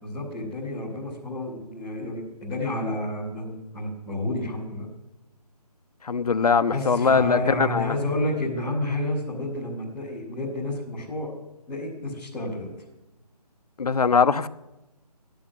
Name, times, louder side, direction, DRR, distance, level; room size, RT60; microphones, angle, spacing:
voice 1, 0.0-4.9 6.7-11.3 11.7-12.7, left 1 dB, ahead, -15 dB, 0.4 m, -30 dB
voice 2, 6.0-7.9 13.8-14.5, left 5 dB, 65° left, 13 dB, 0.9 m, -21 dB
14.0 x 10.5 x 7.8 m, 1.0 s
figure-of-eight pair, 165°, 21 cm